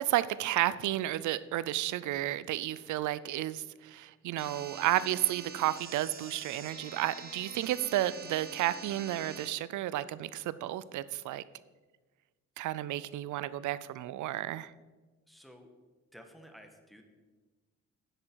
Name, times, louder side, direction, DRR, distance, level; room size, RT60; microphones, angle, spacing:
voice 1, 0.0-11.4 12.6-14.7, right 14 dB, 75° right, 17 dB, 0.5 m, -32 dB
sound 1, 4.4-9.5, right 4 dB, 30° right, 1.7 m, -46 dB
voice 2, 15.3-15.7 16.1-17.0, equal, ahead, 4 dB, 1.4 m, -53 dB
9.9 x 7.6 x 4.7 m, 1.3 s
cardioid pair, 90°, 30 cm